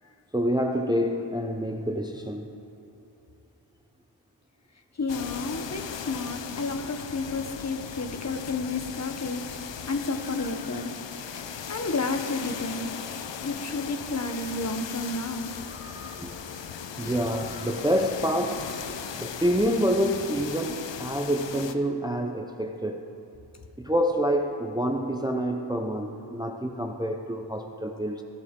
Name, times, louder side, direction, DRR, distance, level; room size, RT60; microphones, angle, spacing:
voice 1, 0.3-2.5 10.4-10.5 13.0-13.3 15.6-16.3 17.0-18.8 19.1-23.1 23.8-28.2, equal, 10° right, 4 dB, 0.5 m, -27 dB
voice 2, 5.0-9.4 9.9-10.9 11.3-12.9 13.4-15.5, left 3 dB, 40° left, 6 dB, 0.9 m, -31 dB
sound 1, 5.1-21.7, left 8 dB, 85° left, 0.6 m, -38 dB
sound 2, 7.0-19.5, left 2 dB, 60° left, 2.0 m, -49 dB
15.5 x 11.0 x 3.7 m, 2.8 s
wide cardioid pair, 110°, 43 cm